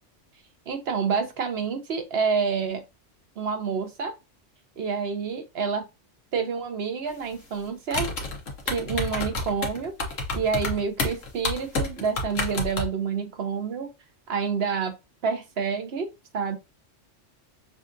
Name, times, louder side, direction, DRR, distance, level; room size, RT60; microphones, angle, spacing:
voice 1, 0.7-2.8 3.4-4.1 4.8-5.9 6.3-8.1 8.7-9.9 10.3-13.9 14.3-14.9 15.2-16.1 16.3-16.6, right 6 dB, 55° right, 1.0 m, -28 dB
sound 1, 7.9-12.9, left 3 dB, 80° left, 1.3 m, -29 dB
6.5 x 2.4 x 2.6 m
omnidirectional pair, 1.3 m